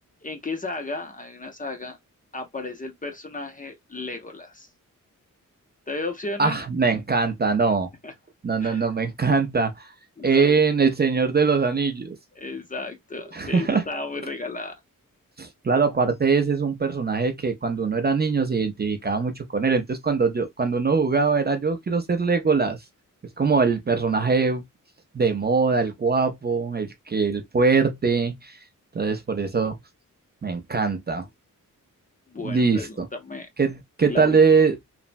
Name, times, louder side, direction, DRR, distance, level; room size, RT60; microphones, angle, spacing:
voice 1, 0.2-2.0 2.3-4.7 5.9-6.6 8.0-8.1 8.6-8.8 10.2-10.6 12.4-14.8 32.3-33.5 34.1-34.4, left 3 dB, 25° left, 0.5 m, -34 dB
voice 2, 6.4-7.9 8.4-9.9 10.2-12.1 13.3-13.8 15.4-22.8 23.4-24.6 25.1-28.6 28.9-29.8 30.4-31.3 32.4-33.1 33.6-34.7, right 4 dB, 30° right, 0.4 m, -22 dB
3.2 x 2.0 x 2.5 m
wide cardioid pair, 175°, 33 cm